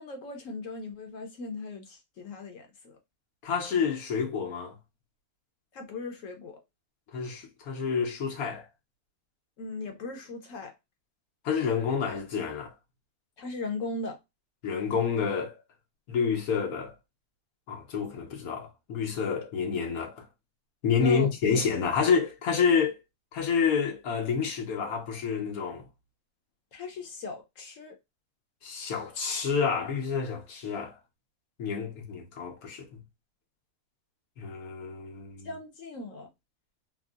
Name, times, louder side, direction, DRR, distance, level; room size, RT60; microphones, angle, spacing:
voice 1, 0.0-3.0 5.7-6.6 9.6-10.7 13.4-14.2 21.0-21.3 26.7-27.9 35.4-36.3, left 3 dB, 70° left, 1.1 m, -38 dB
voice 2, 3.4-4.8 7.1-8.6 11.4-12.7 14.6-15.6 16.1-16.9 17.7-20.2 20.8-23.0 23.3-25.8 28.6-30.9 31.6-33.0 34.4-35.5, left 6 dB, 85° left, 1.3 m, -28 dB
3.5 x 2.0 x 2.4 m
omnidirectional pair, 1.5 m